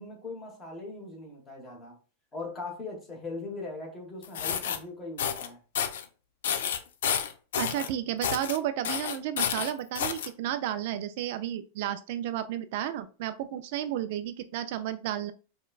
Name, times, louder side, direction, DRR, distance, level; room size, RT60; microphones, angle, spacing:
voice 1, 0.0-2.0 2.3-5.6, left 3 dB, 15° left, 1.2 m, -40 dB
sound 1, 4.2-4.8 5.2-5.5 5.7-6.0 6.4-7.9 8.2-8.6 8.8-10.3, left 8 dB, 80° left, 0.5 m, -30 dB
voice 2, 7.6-15.3, right 11 dB, 55° right, 0.3 m, -32 dB
5.1 x 2.2 x 2.3 m
supercardioid pair, 150°, 0 cm